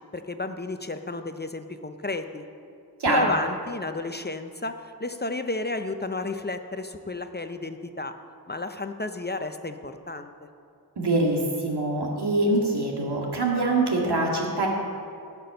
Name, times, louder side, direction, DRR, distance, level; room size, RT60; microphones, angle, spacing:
voice 1, 0.1-2.5 3.1-8.1 8.5-10.3, left 2 dB, 25° left, 7 dB, 0.6 m, -32 dB
voice 2, 11.0-14.7, right 2 dB, 75° right, -1 dB, 2.2 m, -24 dB
15.5 x 6.1 x 6.8 m, 2.5 s
wide cardioid pair, 85°, 40 cm